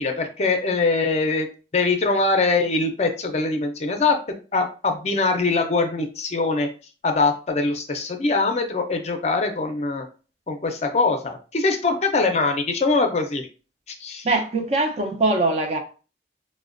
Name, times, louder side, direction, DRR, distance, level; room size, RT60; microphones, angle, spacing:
voice 1, 0.0-1.5 1.7-4.2 4.5-6.7 7.0-10.1 10.5-13.5 13.9-14.3, left 3 dB, 40° left, 0.5 m, -22 dB
voice 2, 14.2-15.8, right 2 dB, 35° right, 0.5 m, -22 dB
4.8 x 2.1 x 2.5 m
head